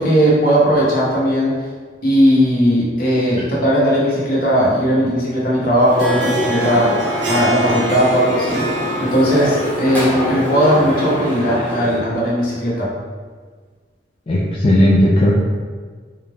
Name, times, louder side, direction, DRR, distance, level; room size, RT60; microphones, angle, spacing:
voice 1, 0.0-1.5 2.0-6.9 7.2-8.6 9.0-12.9, equal, 55° left, -6 dB, 1.2 m, -17 dB
Harp, 5.8-11.3, equal, 70° right, 0.7 m, -26 dB
sound 1, 5.9-12.0, equal, 10° left, 1.0 m, -25 dB
voice 2, 14.3-15.3, left 1 dB, 30° left, -5 dB, 0.4 m, -14 dB
4.3 x 2.3 x 3.5 m, 1.5 s
head